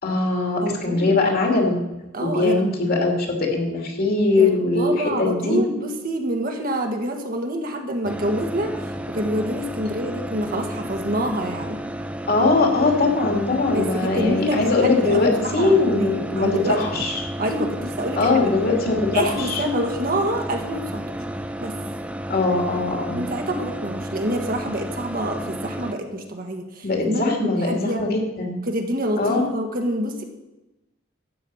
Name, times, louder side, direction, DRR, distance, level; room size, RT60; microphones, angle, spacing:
voice 1, 0.0-1.8 2.2-5.6 12.3-17.2 18.2-19.6 22.3-23.2 26.8-28.6 29.2-29.5, left 3 dB, 50° left, 2 dB, 2.6 m, -21 dB
voice 2, 0.6-1.2 2.1-2.8 4.4-8.7 9.1-11.8 13.7-16.8 17.4-18.3 19.1-21.0 21.6-21.8 23.1-28.0 28.6-30.2, right 1 dB, 45° right, 3 dB, 1.6 m, -27 dB
sound 1, 8.0-25.9, right 1 dB, 5° right, 0.6 m, -32 dB
12.5 x 8.9 x 5.6 m, 0.98 s
head